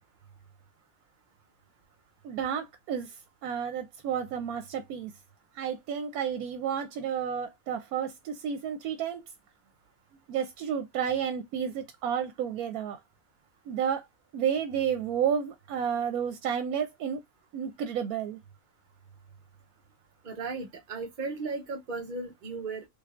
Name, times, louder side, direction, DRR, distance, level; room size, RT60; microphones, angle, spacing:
voice 1, 2.2-3.1 3.4-5.1 5.6-9.2 10.3-13.0 13.7-14.0 14.3-17.2 17.5-18.4, right 8 dB, 85° right, 1.1 m, -31 dB
voice 2, 20.2-22.8, right 3 dB, 50° right, 0.6 m, -36 dB
3.4 x 3.2 x 2.3 m
omnidirectional pair, 1.5 m